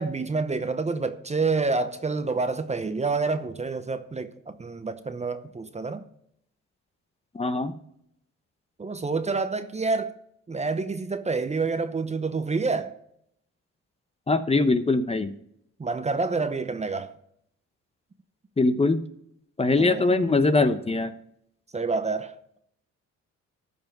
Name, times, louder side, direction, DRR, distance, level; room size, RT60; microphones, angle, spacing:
voice 1, 0.0-6.0 8.8-10.1 10.5-12.9 15.8-17.1 19.8-20.1 21.7-22.6, right 4 dB, 20° right, 0.8 m, -28 dB
voice 2, 7.3-7.7 14.3-15.3 18.6-19.0 19.6-21.1, left 3 dB, 20° left, 0.8 m, -22 dB
14.0 x 5.5 x 5.9 m
cardioid pair, 90°, 30 cm